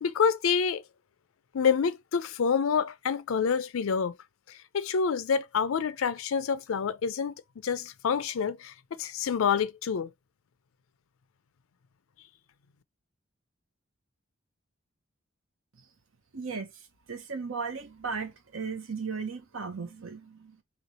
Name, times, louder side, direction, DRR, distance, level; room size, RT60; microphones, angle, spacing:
voice 1, 0.0-0.8 1.5-4.1 4.7-7.3 7.6-10.1, left 6 dB, 80° left, 0.4 m, -27 dB
voice 2, 16.3-20.6, right 5 dB, 75° right, 0.8 m, -36 dB
3.1 x 2.8 x 4.0 m
head